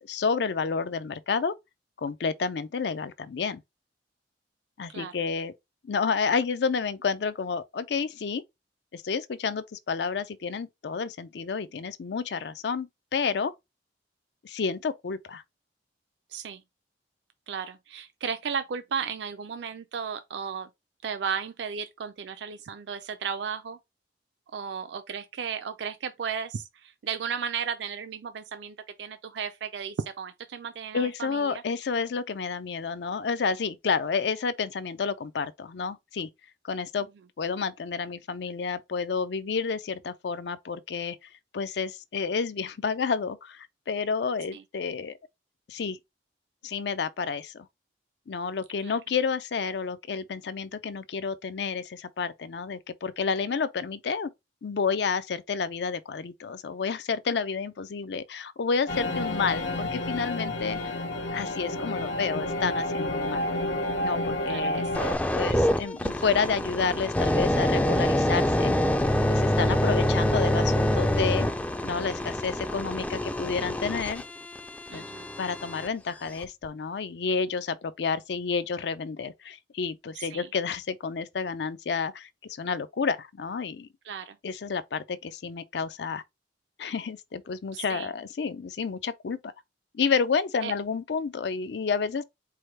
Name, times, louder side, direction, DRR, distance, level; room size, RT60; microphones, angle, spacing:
voice 1, 0.0-1.5 2.0-3.6 4.8-5.5 5.8-8.4 8.9-13.5 14.4-15.4 30.9-36.3 36.6-37.1 37.4-41.2 41.5-45.1 45.7-46.0 46.6-47.7 48.3-54.3 54.6-60.8 61.3-63.5 64.0-64.8 65.3-68.7 69.2-71.5 71.8-74.2 74.9-75.0 75.4-82.3 82.6-83.9 84.4-86.2 86.8-89.4 89.9-92.2, left 5 dB, 65° left, 0.4 m, -30 dB
voice 2, 16.3-16.6 17.5-20.7 21.0-23.8 24.5-31.6 44.5-44.6 48.8-49.0 64.5-65.1 69.7-69.8 74.9-75.3 80.1-80.5 84.0-84.4 87.7-88.1 90.6-90.7, right 6 dB, 75° right, 0.4 m, -35 dB
sound 1, 58.9-65.1, left 1 dB, 90° left, 1.5 m, -30 dB
sound 2, 64.9-75.9 76.4-76.7, left 1 dB, 10° left, 0.3 m, -26 dB
4.8 x 2.1 x 4.4 m
head